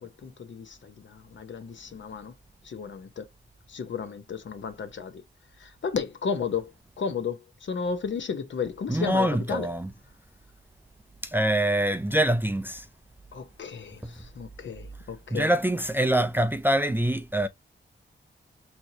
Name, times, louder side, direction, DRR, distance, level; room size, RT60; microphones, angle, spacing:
voice 1, 0.0-2.3 2.6-3.3 3.7-5.2 5.6-9.7 13.3-15.5, left 6 dB, 65° left, 0.8 m, -33 dB
voice 2, 8.9-9.9 11.2-12.9 15.3-17.5, right 1 dB, 10° right, 0.4 m, -24 dB
4.4 x 2.9 x 2.7 m
cardioid pair, 70°, 21 cm